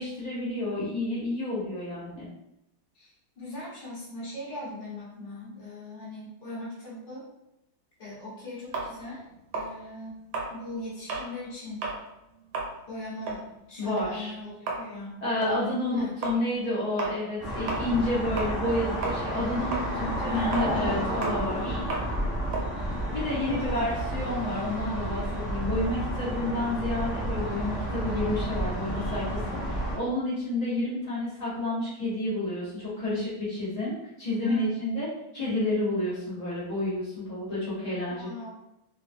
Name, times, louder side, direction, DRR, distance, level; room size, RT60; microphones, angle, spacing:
voice 1, 0.0-2.3 13.8-14.3 15.2-21.8 23.1-35.1 35.3-38.3, left 1 dB, 65° left, -9 dB, 0.4 m, -30 dB
voice 2, 3.4-7.2 8.0-9.2 9.5-10.2 10.5-11.9 12.9-15.2 15.8-16.2 23.5-23.9 28.8-28.9 34.4-34.9 38.1-38.5, left 1 dB, 40° left, -7 dB, 0.7 m, -39 dB
sound 1, 8.7-11.3 11.7-12.0 12.4-18.8 19.0-23.8, right 3 dB, 75° right, 1.4 m, -35 dB
sound 2, 17.4-30.0, equal, ahead, 0.6 m, -31 dB
3.3 x 2.2 x 2.5 m, 0.87 s
omnidirectional pair, 2.3 m